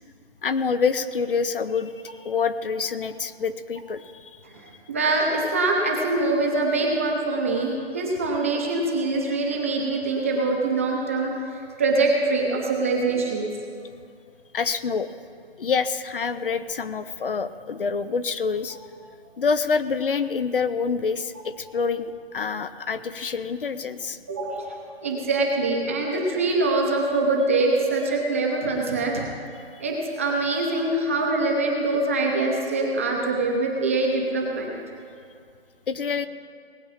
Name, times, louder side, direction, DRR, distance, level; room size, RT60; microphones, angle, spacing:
voice 1, 0.4-4.4 14.5-15.1 15.6-18.8 19.4-24.2 35.9-36.3, left 5 dB, 55° left, 13 dB, 0.7 m, -26 dB
voice 2, 4.4-11.3 11.8-13.5 24.3-24.7 25.0-29.3 29.8-34.8, right 2 dB, 15° right, -1 dB, 0.7 m, -24 dB
19.0 x 8.6 x 5.7 m, 2.3 s
hypercardioid pair, 170°, 32 cm